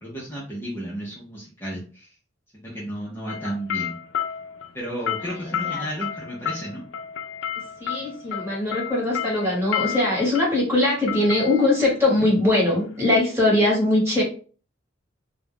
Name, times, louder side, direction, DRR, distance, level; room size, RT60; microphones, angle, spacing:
voice 1, 0.0-2.1 2.5-4.0 4.7-6.8, equal, 15° left, -6 dB, 0.6 m, -33 dB
sound 1, 3.3-13.1, left 9 dB, 80° left, 0.4 m, -32 dB
voice 2, 7.8-14.2, left 2 dB, 15° right, -5 dB, 1.2 m, -21 dB
2.4 x 2.1 x 3.3 m, 0.39 s
head